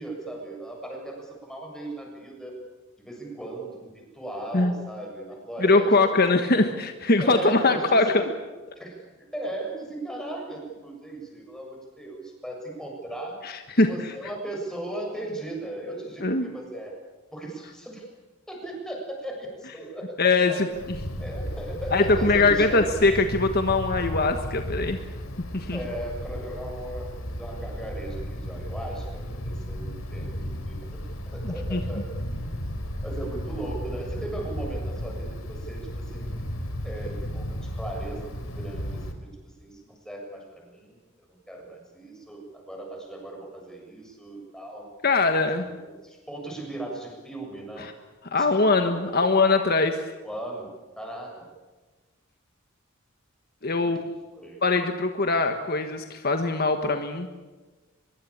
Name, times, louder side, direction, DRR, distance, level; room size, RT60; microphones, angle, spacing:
voice 1, 0.0-2.6 3.0-5.9 7.2-8.2 8.8-13.4 13.9-17.0 17.3-18.1 18.5-20.6 21.2-22.9 25.7-32.1 33.0-36.4 36.8-41.0 41.5-44.9 45.5-47.9 48.4-48.5 49.3-49.4 50.2-50.7 51.0-51.5 53.8-54.1 54.3-54.6, right 1 dB, 5° left, 0 dB, 7.3 m, -37 dB
voice 2, 5.6-8.3 13.4-14.1 16.2-16.5 20.2-20.7 21.9-25.0 25.5-25.8 31.4-31.8 45.0-45.7 47.8-47.9 48.3-50.1 53.6-54.0 54.6-57.3, left 3 dB, 50° left, 6 dB, 1.5 m, -22 dB
Wind, 20.7-39.1, equal, 85° left, 3.7 m, -34 dB
24.0 x 22.5 x 8.7 m, 1.3 s
head